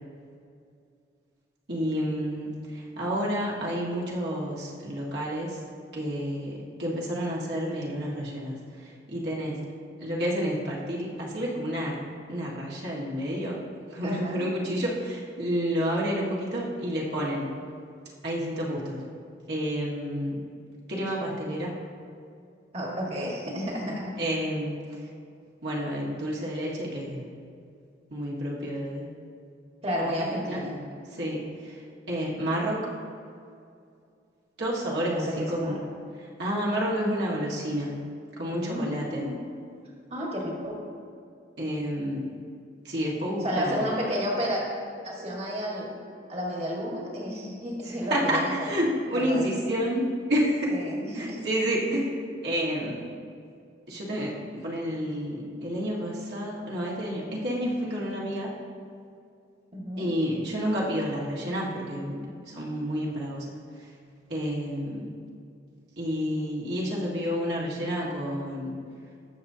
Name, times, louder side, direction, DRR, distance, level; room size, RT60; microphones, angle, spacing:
voice 1, 1.7-5.6 5.9-9.6 10.0-12.0 12.3-13.6 13.9-17.5 18.2-19.0 19.5-20.4 20.9-21.7 24.2-25.0 25.6-27.2 28.1-29.1 30.2-30.6 31.1-31.8 32.1-32.8 34.6-35.8 36.4-37.9 38.4-39.2 41.6-42.2 42.8-43.8 47.8-50.7 51.1-52.1 52.4-53.0 53.9-58.5 60.0-62.2 62.5-63.4 63.8-63.9 64.3-65.1 66.0-68.7, equal, 60° right, -5 dB, 1.8 m, -30 dB
voice 2, 14.0-14.5 22.7-24.0 29.8-30.8 35.1-35.8 38.6-39.3 40.1-40.8 43.4-44.6 45.0-45.9 46.3-48.7 49.1-49.5 50.7-51.4 59.7-60.1, equal, 35° right, -3 dB, 1.8 m, -31 dB
20.0 x 7.0 x 2.8 m, 2.4 s
head